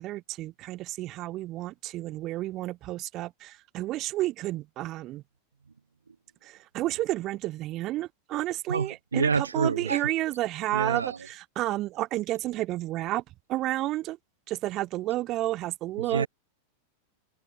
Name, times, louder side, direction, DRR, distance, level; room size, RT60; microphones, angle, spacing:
voice 1, 0.0-5.2 6.4-13.2 13.5-14.2 14.5-16.3, right 16 dB, 35° right, 5.2 m, -31 dB
voice 2, 8.7-10.0 10.7-11.2 16.0-16.3, right 5 dB, 75° right, 2.7 m, -27 dB
figure-of-eight pair, 90°, 0 cm